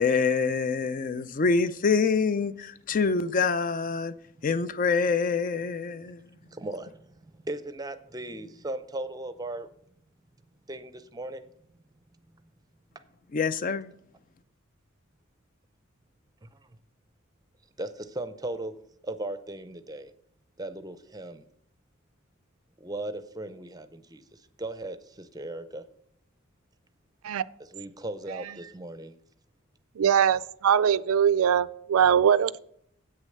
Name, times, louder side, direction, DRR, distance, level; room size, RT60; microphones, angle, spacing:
voice 1, 0.0-4.1 4.4-6.2 13.3-13.9, left 5 dB, 40° left, 0.4 m, -26 dB
voice 2, 6.4-9.7 10.7-11.5 16.4-16.6 17.8-18.7 19.0-20.1 20.6-21.4 22.8-25.8 27.6-29.1, right 2 dB, 20° right, 0.6 m, -37 dB
voice 3, 30.0-32.6, right 8 dB, 90° right, 0.4 m, -22 dB
8.2 x 6.4 x 6.5 m
head